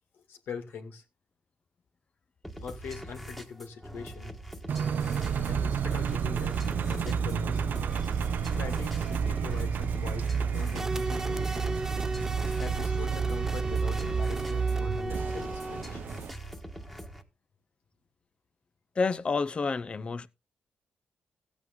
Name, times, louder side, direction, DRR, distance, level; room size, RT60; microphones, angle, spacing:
voice 1, 0.1-1.0 2.6-4.4 5.5-6.6 6.9-7.6 8.5-10.3 10.5-11.7 12.6-16.1, left 6 dB, 85° left, 2.4 m, -42 dB
sound 1, 2.4-17.2, right 1 dB, 5° left, 1.5 m, -43 dB
Engine, 4.7-16.3, right 6 dB, 60° right, 0.8 m, -30 dB
sound 2, 10.8-16.2, right 1 dB, 10° right, 0.5 m, -36 dB
voice 2, 18.9-20.3, left 4 dB, 30° left, 0.7 m, -29 dB
15.5 x 8.1 x 3.8 m
wide cardioid pair, 145°, 4 cm